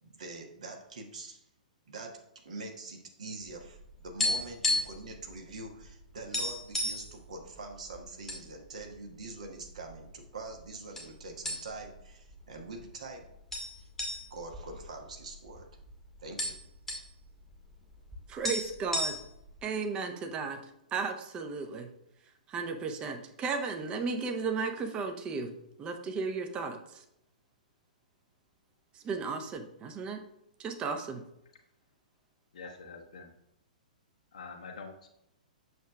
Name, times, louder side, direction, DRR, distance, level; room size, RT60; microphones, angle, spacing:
voice 1, 0.0-1.4 1.8-2.2 2.4-13.3 13.7-13.9 14.3-15.7 16.2-16.6, right 3 dB, 60° right, 2 dB, 1.4 m, -44 dB
sound 1, 3.6-5.1 5.3-5.5 5.9-6.0 6.3-7.1 7.8-8.4 8.8-8.9 9.6-10.3 11.0-11.1 11.5-12.0 12.3-12.4 13.5-15.6 15.9-16.0 16.2-17.1 18.1-18.2 18.4-19.5, left 1 dB, 5° left, 1.1 m, -32 dB
voice 2, 18.3-19.2 19.6-20.6 20.9-21.9 22.5-27.0 28.9-30.2 30.6-31.2, right 4 dB, 20° right, 5 dB, 0.8 m, -34 dB
voice 3, 32.5-33.3 34.3-35.1, left 4 dB, 60° left, 2 dB, 0.8 m, -45 dB
8.0 x 6.3 x 2.3 m, 0.80 s
figure-of-eight pair, 110°, 4 cm